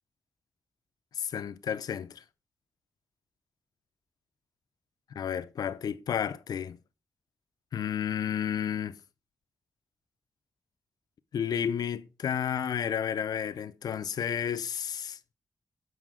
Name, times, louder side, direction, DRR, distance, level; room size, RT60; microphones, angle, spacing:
voice 1, 1.1-2.2 5.1-6.8 7.7-9.0 11.3-15.2, left 8 dB, 75° left, 0.5 m, -31 dB
7.7 x 4.9 x 3.7 m
cardioid pair, 50°, 7 cm